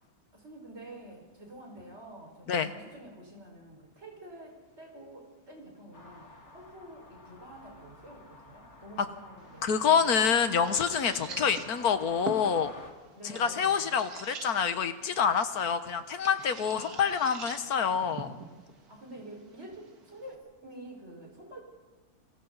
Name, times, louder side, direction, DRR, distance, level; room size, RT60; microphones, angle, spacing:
voice 1, 0.3-10.0 11.3-11.7 13.1-14.0 16.7-17.3 18.9-21.6, right 1 dB, 50° right, -1 dB, 5.8 m, -48 dB
sound 1, 5.9-12.9, left 2 dB, 50° left, 2.7 m, -51 dB
sound 2, 9.4-20.4, right 4 dB, 85° right, 2.1 m, -46 dB
voice 2, 9.6-12.7 13.2-18.3, left 7 dB, 85° left, 10 dB, 1.7 m, -27 dB
29.5 x 23.5 x 4.1 m, 1.3 s
omnidirectional pair, 1.6 m